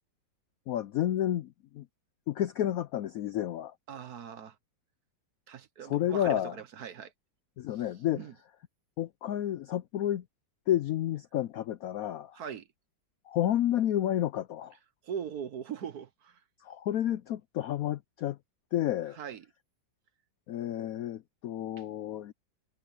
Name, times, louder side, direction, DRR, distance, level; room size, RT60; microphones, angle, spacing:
voice 1, 0.7-1.9 2.3-3.7 5.8-6.6 7.6-8.2 9.0-10.2 10.7-12.4 13.3-14.8 16.6-18.4 18.7-19.2 20.5-22.3, left 12 dB, 75° left, 0.8 m, -30 dB
voice 2, 3.9-4.6 5.5-7.1 8.1-8.3 12.3-12.7 15.0-16.4 19.1-19.5, right 8 dB, 60° right, 1.4 m, -40 dB
omnidirectional pair, 2.0 m